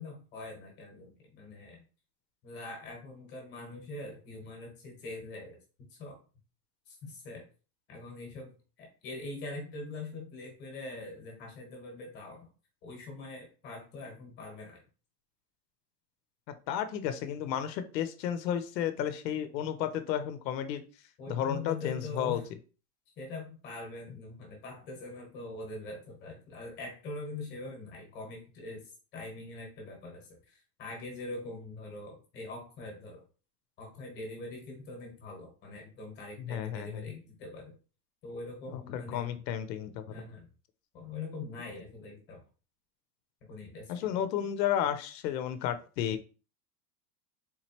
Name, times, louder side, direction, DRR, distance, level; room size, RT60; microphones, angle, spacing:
voice 1, 0.0-1.8 2.4-5.6 5.9-6.2 6.9-7.4 7.9-12.5 12.8-14.8 21.2-22.4 23.2-33.2 33.8-37.8 38.2-39.4 40.1-40.5 40.9-42.4 43.4-44.1, left 2 dB, 20° left, 1 dB, 1.0 m, -43 dB
voice 2, 16.7-20.8 21.3-22.4 36.5-37.0 38.7-40.2 43.9-46.2, left 10 dB, 85° left, 10 dB, 0.7 m, -32 dB
3.8 x 3.0 x 2.8 m, 0.36 s
supercardioid pair, 180°, 49 cm